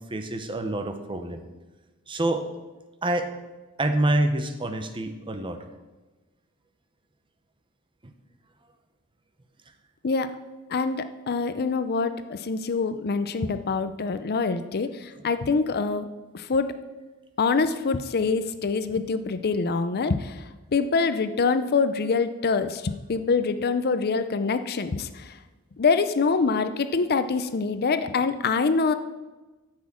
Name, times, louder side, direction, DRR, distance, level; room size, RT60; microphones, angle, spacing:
voice 1, 0.1-1.4 2.1-2.5 3.0-3.3 3.8-5.6 8.0-8.1, right 1 dB, 20° right, 7 dB, 0.9 m, -26 dB
voice 2, 10.7-16.1 16.3-16.7 17.4-25.4 25.8-28.9, left 4 dB, 45° left, 11 dB, 0.5 m, -25 dB
9.6 x 6.3 x 7.5 m, 1.2 s
head